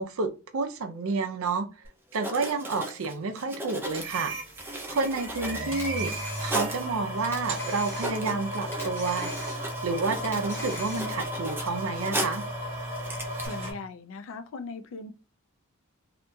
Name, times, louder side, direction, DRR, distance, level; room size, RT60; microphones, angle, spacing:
voice 1, 0.0-1.7 2.1-4.4 4.9-6.2 6.4-9.6 9.8-12.4, right 4 dB, 70° right, 0.4 m, -30 dB
Writing, 1.8-1.9 2.1-6.9 7.4-7.5 7.8-12.5 12.9-13.5, right 1 dB, 10° right, 0.4 m, -37 dB
sound 1, 3.9-13.7, equal, 25° right, 0.9 m, -35 dB
Camera, 5.7-6.9 7.2-8.4 8.7-9.9 10.2-11.3, left 2 dB, 10° left, 0.8 m, -41 dB
voice 2, 13.4-15.1, left 4 dB, 65° left, 0.3 m, -39 dB
2.8 x 2.6 x 2.2 m
head